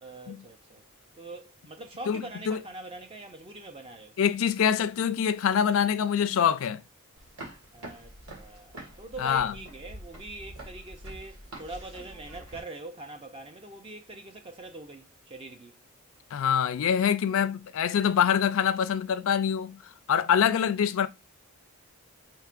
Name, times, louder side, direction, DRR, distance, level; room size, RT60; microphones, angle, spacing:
voice 1, 0.0-0.8 1.1-4.1 7.7-15.8, right 2 dB, 25° right, 0.4 m, -43 dB
voice 2, 2.1-2.6 4.2-6.8 9.2-9.5 16.3-19.8 20.1-21.1, left 8 dB, 65° left, 0.4 m, -25 dB
sound 1, 7.2-12.6, right 1 dB, 85° right, 1.7 m, -45 dB
4.6 x 3.6 x 2.4 m
head